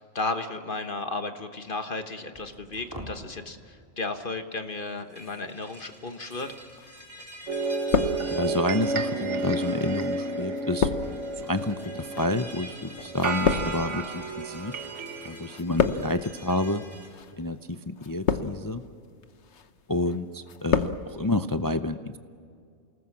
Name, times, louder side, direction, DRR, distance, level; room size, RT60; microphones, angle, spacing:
voice 1, 0.0-6.5, left 3 dB, 40° left, 7 dB, 1.4 m, -34 dB
sound 1, 2.3-3.1 5.0-17.1, right 1 dB, 15° right, 4.3 m, -46 dB
sound 2, 6.8-7.4 7.6-8.7 9.4-15.0 15.3-16.3 17.0-17.3 18.0-18.8 19.2-19.7 20.1-21.0 21.3-21.4, left 6 dB, 60° left, 1.2 m, -29 dB
sound 3, 7.5-15.6, right 3 dB, 65° right, 1.5 m, -32 dB
voice 2, 8.3-10.9 11.4-14.8 15.2-16.8 17.4-18.8 19.9-22.2, left 2 dB, 25° left, 9 dB, 0.4 m, -29 dB
28.5 x 19.5 x 7.3 m, 2.3 s
omnidirectional pair, 1.4 m